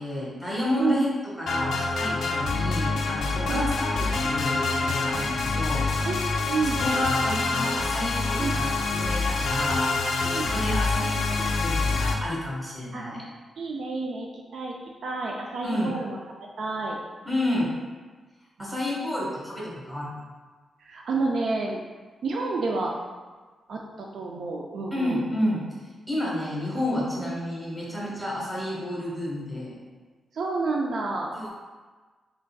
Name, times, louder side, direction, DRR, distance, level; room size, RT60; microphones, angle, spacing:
voice 1, 0.0-5.9 6.6-9.9 10.3-13.2 15.6-15.9 17.2-17.7 18.6-20.1 24.9-25.6 26.1-29.8 31.3-31.5, left 1 dB, 10° right, -5 dB, 1.0 m, -30 dB
sound 1, 1.5-12.1, left 3 dB, 90° left, 0.4 m, -26 dB
voice 2, 6.1-6.8 8.4-8.6 10.2-10.5 12.9-13.0 13.6-14.8 15.0-16.2 16.6-17.0 18.6-18.7 20.8-21.8 22.2-22.9 23.7-25.2 27.2-27.3 30.3-31.3, right 3 dB, 70° right, 0 dB, 0.3 m, -29 dB
3.8 x 3.3 x 2.2 m, 1.4 s
wide cardioid pair, 130°, 0 cm